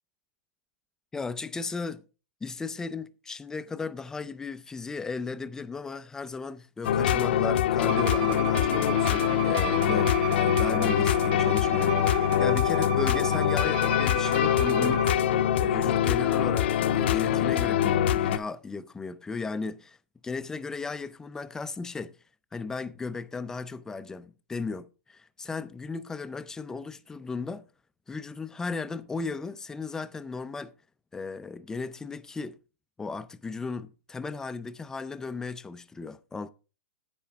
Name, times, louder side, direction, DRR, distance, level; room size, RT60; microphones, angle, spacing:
voice 1, 1.1-2.0 2.4-15.2 15.6-20.0 20.2-22.2 22.5-27.7 28.1-30.7 31.1-32.6 33.0-36.5, left 4 dB, 10° left, 0.5 m, -36 dB
sound 1, 6.8-18.4, left 10 dB, 65° left, 0.9 m, -24 dB
Bowed string instrument, 7.9-15.2, right 9 dB, 50° right, 0.6 m, -35 dB
10.5 x 8.8 x 3.5 m
hypercardioid pair, 140°, 6 cm